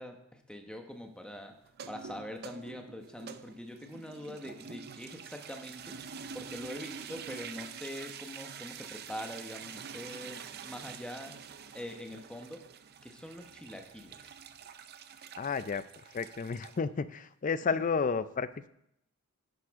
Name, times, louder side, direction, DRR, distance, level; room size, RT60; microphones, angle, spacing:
voice 1, 0.0-1.5 1.9-6.0 6.3-11.3 11.7-12.6 13.0-14.3 17.7-17.8, equal, 5° left, 4 dB, 1.1 m, -44 dB
sound 1, 1.7-16.8, right 6 dB, 45° right, 0.5 m, -46 dB
voice 2, 15.4-15.8 16.1-18.7, left 5 dB, 35° left, 14 dB, 0.4 m, -31 dB
10.5 x 9.9 x 3.6 m, 0.76 s
head